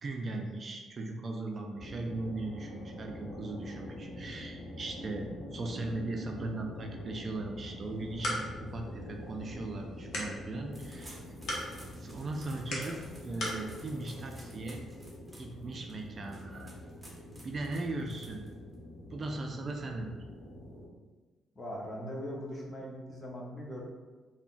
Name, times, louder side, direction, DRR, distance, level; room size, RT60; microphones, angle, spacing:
voice 1, 0.0-11.2 12.0-14.9 15.3-16.7 17.4-18.4 19.1-20.1, right 2 dB, 45° right, 3 dB, 0.3 m, -38 dB
sound 1, 1.7-20.9, left 1 dB, 45° left, 1.1 m, -45 dB
sound 2, 7.8-13.7, left 1 dB, 65° left, 0.8 m, -41 dB
sound 3, 10.7-18.7, right 1 dB, 10° right, 0.8 m, -55 dB
voice 2, 21.5-23.8, equal, 25° left, -2 dB, 0.7 m, -40 dB
3.6 x 2.1 x 2.5 m, 1.3 s
cardioid pair, 90°, 0 cm